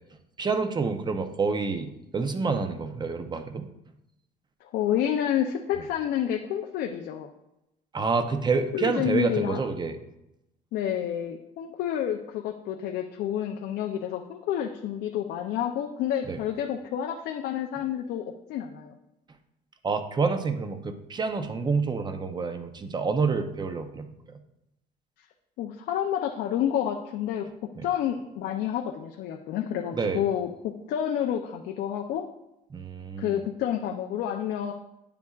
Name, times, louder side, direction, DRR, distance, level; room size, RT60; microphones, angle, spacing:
voice 1, 0.4-3.7 7.9-10.0 16.3-16.4 19.8-24.1 27.8-27.9 29.9-30.2 32.7-33.4, right 4 dB, 25° right, 8 dB, 0.7 m, -28 dB
voice 2, 4.7-7.3 8.5-9.6 10.7-19.0 25.6-27.5 27.8-32.3 33.2-34.7, left 10 dB, 80° left, 3 dB, 0.6 m, -29 dB
9.5 x 6.9 x 2.4 m, 0.88 s
cardioid pair, 110°, 17 cm